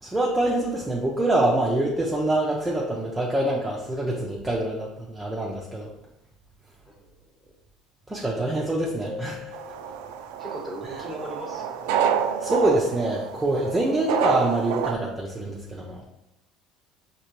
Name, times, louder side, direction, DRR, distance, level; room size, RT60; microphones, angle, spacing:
voice 1, 0.0-5.9 8.1-9.5 12.4-16.0, right 1 dB, 10° right, -4 dB, 0.6 m, -25 dB
voice 2, 6.9-7.3 10.4-12.0, equal, 10° left, -2 dB, 1.1 m, -38 dB
sound 1, 9.1-10.6, left 6 dB, 45° left, 0.9 m, -42 dB
sound 2, 9.5-14.9, right 8 dB, 85° right, 0.3 m, -28 dB
5.4 x 2.9 x 3.0 m, 0.87 s
cardioid pair, 135°, 0 cm